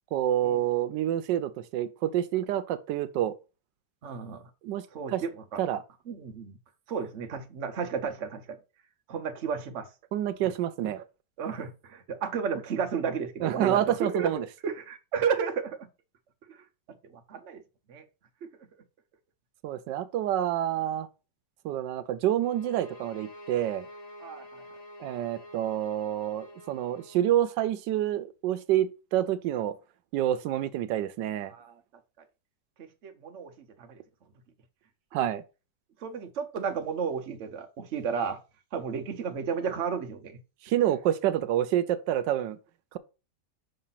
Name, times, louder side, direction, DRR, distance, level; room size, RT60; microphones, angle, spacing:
voice 1, 0.1-3.3 4.6-5.2 5.6-5.8 10.1-11.0 13.4-14.5 19.6-21.1 21.6-23.9 25.0-29.8 30.1-31.5 35.1-35.4 40.6-42.6, right 12 dB, 85° right, 1.3 m, -28 dB
voice 2, 4.0-4.5 4.9-5.6 6.1-6.6 6.9-8.6 9.1-9.9 10.4-10.5 11.4-14.3 14.6-15.9 17.3-17.6 17.9-18.0 18.4-18.5 24.2-24.6 31.5-31.8 32.8-33.5 33.8-34.0 36.0-38.4 38.7-40.4, right 6 dB, 50° right, 1.0 m, -33 dB
sound 1, 22.4-27.3, left 1 dB, 35° left, 0.6 m, -47 dB
5.8 x 3.3 x 5.6 m
omnidirectional pair, 1.9 m